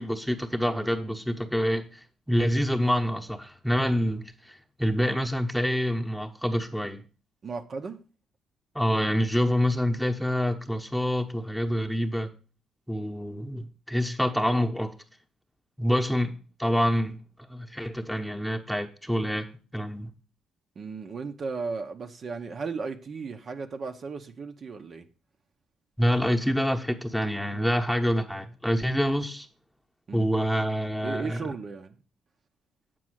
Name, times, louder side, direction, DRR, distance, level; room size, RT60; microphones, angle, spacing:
voice 1, 0.0-2.0 2.3-7.0 8.7-12.3 12.9-14.9 15.8-17.2 17.5-20.1 26.0-29.5 30.1-31.5, equal, ahead, 1.0 m, -27 dB
voice 2, 7.4-8.0 20.8-25.1 30.1-30.3 31.0-31.9, right 4 dB, 50° right, 0.8 m, -35 dB
7.7 x 4.7 x 6.2 m
cardioid pair, 90°, 0 cm